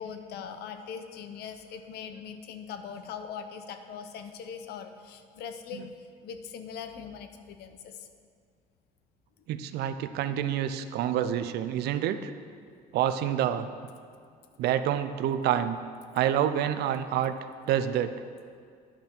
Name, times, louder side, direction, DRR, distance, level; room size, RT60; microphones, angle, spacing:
voice 1, 0.0-5.9 6.2-8.1 14.2-14.3, left 7 dB, 75° left, 8 dB, 0.7 m, -41 dB
voice 2, 9.5-12.3 12.9-13.7 14.6-15.8 16.1-17.3 17.7-18.1, right 10 dB, 75° right, 11 dB, 0.5 m, -27 dB
10.0 x 5.8 x 4.5 m, 2.2 s
cardioid pair, 110°, 17 cm